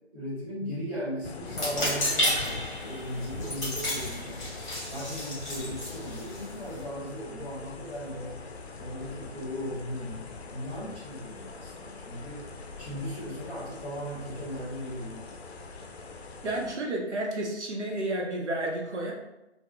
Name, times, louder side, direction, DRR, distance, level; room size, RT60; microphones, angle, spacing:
voice 1, 0.1-4.4 4.8-8.4 8.8-12.5 12.8-15.3, equal, 15° right, -11 dB, 0.9 m, -37 dB
sound 1, 1.2-16.7, left 3 dB, 70° left, 0.4 m, -43 dB
sound 2, 1.5-6.8, left 1 dB, 20° left, 0.9 m, -32 dB
voice 2, 16.4-19.1, right 1 dB, 85° right, -1 dB, 0.7 m, -31 dB
2.2 x 2.1 x 2.9 m, 0.95 s
figure-of-eight pair, 145°, 34 cm